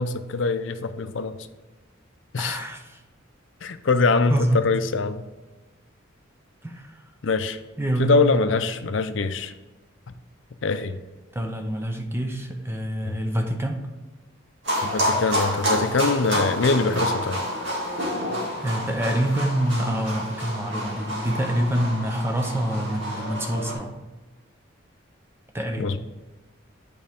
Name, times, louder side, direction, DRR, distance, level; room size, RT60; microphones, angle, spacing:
voice 1, 0.0-1.4 2.3-2.6 3.6-5.2 7.2-7.6 8.0-9.5 10.6-11.0 13.0-13.2 14.8-17.4 25.8-26.0, left 4 dB, 65° left, 10 dB, 0.5 m, -23 dB
voice 2, 2.4-3.0 4.3-4.6 6.6-7.0 7.8-8.2 11.3-13.9 18.3-24.0 25.5-26.0, right 1 dB, 10° right, 4 dB, 0.7 m, -26 dB
sound 1, 14.6-23.7, equal, 60° right, 2.3 m, -28 dB
9.0 x 5.1 x 3.6 m, 1.2 s
head